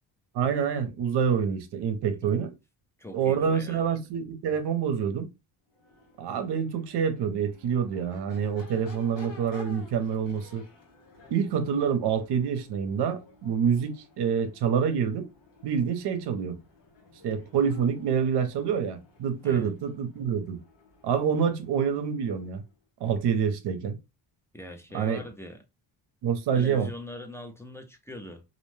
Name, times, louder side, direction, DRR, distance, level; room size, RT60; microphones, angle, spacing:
voice 1, 0.3-2.5 3.1-5.3 6.2-10.6 11.3-15.3 15.6-16.6 17.2-20.6 21.0-22.6 23.0-24.0 24.9-25.2 26.2-26.9, right 7 dB, 70° right, 0.7 m, -27 dB
voice 2, 3.0-3.8 19.4-19.7 24.5-25.6 26.5-28.4, left 1 dB, 5° left, 0.3 m, -42 dB
Crowd / Race car auto racing / Accelerating revving vroom, 5.7-22.8, left 2 dB, 80° left, 1.4 m, -54 dB
2.5 x 2.1 x 3.1 m
cardioid pair, 120°, 43 cm